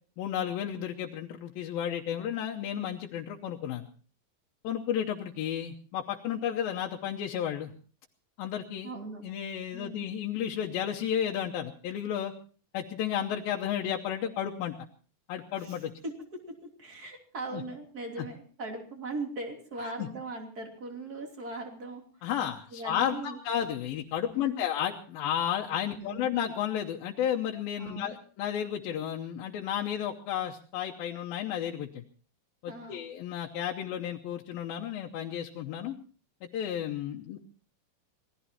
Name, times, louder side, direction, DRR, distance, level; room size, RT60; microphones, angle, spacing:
voice 1, 0.2-3.9 4.6-7.7 8.4-8.9 9.2-12.3 12.7-14.7 15.3-15.9 17.5-17.6 20.0-20.1 22.2-32.0 32.6-36.0 36.4-37.4, left 9 dB, 80° left, 0 dB, 2.7 m, -32 dB
voice 2, 8.8-9.2 9.7-10.1 15.6-22.3 22.7-23.4 24.3-24.6 25.8-26.3 27.8-28.1 32.7-33.0, right 2 dB, 25° right, 2 dB, 3.2 m, -40 dB
26.5 x 18.5 x 2.9 m, 0.41 s
omnidirectional pair, 4.2 m